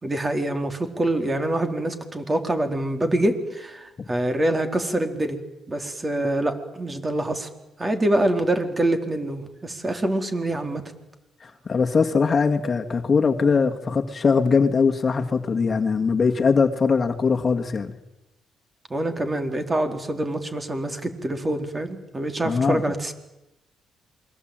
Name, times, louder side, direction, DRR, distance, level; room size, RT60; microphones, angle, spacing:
voice 1, 0.0-5.4 5.7-7.5 7.8-10.8 18.9-23.1, right 1 dB, 20° right, 4.1 m, -25 dB
voice 2, 11.7-17.9 22.4-22.8, left 5 dB, 35° left, 2.0 m, -21 dB
28.0 x 22.0 x 9.1 m
cardioid pair, 90°, 0 cm